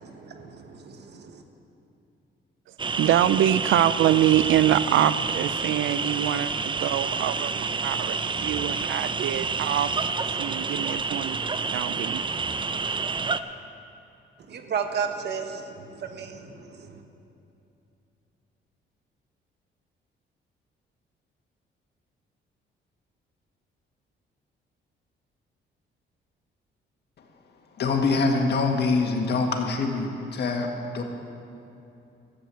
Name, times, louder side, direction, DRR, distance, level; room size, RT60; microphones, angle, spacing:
voice 1, 0.0-1.4 14.5-17.0, right 6 dB, 60° right, 6 dB, 1.3 m, -34 dB
sound 1, 2.8-13.4, right 4 dB, 25° right, 0.5 m, -29 dB
voice 2, 3.0-9.9 10.4-11.4 11.7-12.2, right 12 dB, 80° right, 15 dB, 0.5 m, -24 dB
voice 3, 27.8-30.7 30.9-31.0, left 4 dB, 55° left, 2 dB, 1.9 m, -24 dB
13.5 x 7.8 x 8.3 m, 2.8 s
cardioid pair, 90°, 20 cm